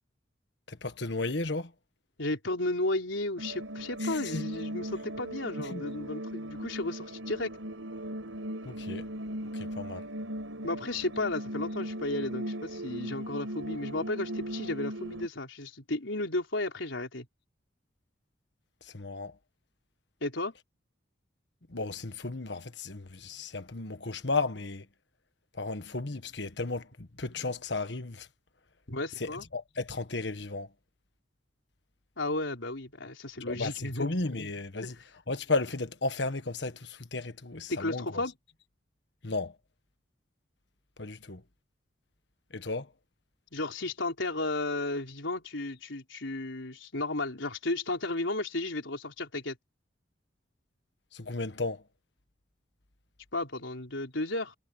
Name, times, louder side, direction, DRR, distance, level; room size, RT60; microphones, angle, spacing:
voice 1, 0.7-1.7 4.0-4.5 5.7-5.8 8.6-9.1 9.5-10.0 18.9-19.3 21.7-24.8 25.6-28.3 29.2-30.7 33.4-34.9 35.3-38.2 39.2-39.5 41.0-41.4 42.5-42.9 51.1-51.8, left 3 dB, 60° left, 1.5 m, -34 dB
voice 2, 2.2-7.5 10.6-17.3 20.2-20.5 28.9-29.4 32.2-34.1 34.8-34.9 37.7-38.3 43.5-49.6 53.3-54.6, left 2 dB, 80° left, 4.0 m, -33 dB
sound 1, 3.4-15.3, equal, 90° right, 6.1 m, -38 dB
head